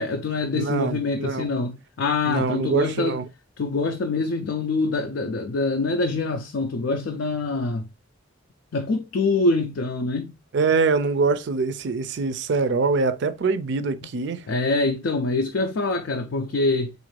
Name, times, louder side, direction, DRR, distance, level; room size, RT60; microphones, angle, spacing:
voice 1, 0.0-3.2 3.6-7.9 8.7-10.3 14.5-16.9, left 3 dB, 70° left, 0.4 m, -25 dB
voice 2, 0.5-1.5 2.2-3.2 10.5-14.4, right 4 dB, 60° right, 0.4 m, -24 dB
4.0 x 2.4 x 3.1 m
head